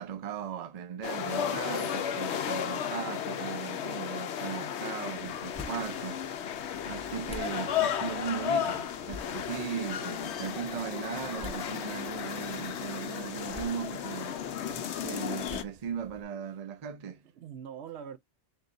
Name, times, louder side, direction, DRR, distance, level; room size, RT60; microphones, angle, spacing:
voice 1, 0.0-6.2 6.5-14.4 15.0-17.2, right 8 dB, 45° right, 0.6 m, -38 dB
sound 1, 1.0-15.6, left 9 dB, 85° left, 0.9 m, -34 dB
sound 2, 5.1-16.2, left 3 dB, 10° left, 0.4 m, -51 dB
sound 3, 9.0-15.2, left 7 dB, 60° left, 0.8 m, -46 dB
voice 2, 14.6-15.0 17.4-18.2, right 8 dB, 75° right, 0.9 m, -44 dB
3.8 x 3.8 x 2.4 m
omnidirectional pair, 1.1 m